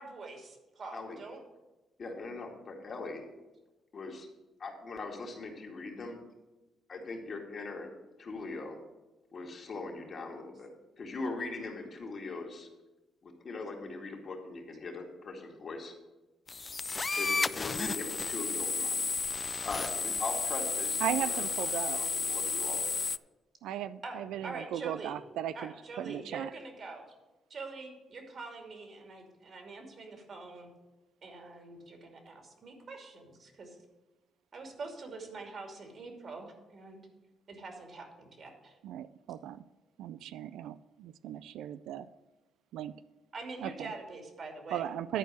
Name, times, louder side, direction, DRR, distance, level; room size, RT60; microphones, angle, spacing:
voice 1, 0.0-1.4 24.0-25.1 25.5-27.0 27.5-30.7 31.2-33.8 34.5-37.1 37.5-38.8 43.3-44.9, right 3 dB, 50° right, 3 dB, 2.6 m, -45 dB
voice 2, 2.0-3.2 3.9-4.3 4.6-6.2 6.9-7.9 8.2-8.8 9.3-10.7 11.0-12.7 13.2-16.0 17.2-19.0 19.6-21.5 21.9-22.8, left 3 dB, 50° left, 1 dB, 2.2 m, -40 dB
sound 1, 16.5-23.2, left 4 dB, 30° left, 0.3 m, -32 dB
voice 3, 21.0-22.0 23.6-26.5 38.8-39.6 40.0-42.1 42.7-42.9 43.6-43.9 44.7-45.2, right 11 dB, 85° right, 14 dB, 0.3 m, -37 dB
11.0 x 4.6 x 7.9 m, 1.1 s
cardioid pair, 90°, 0 cm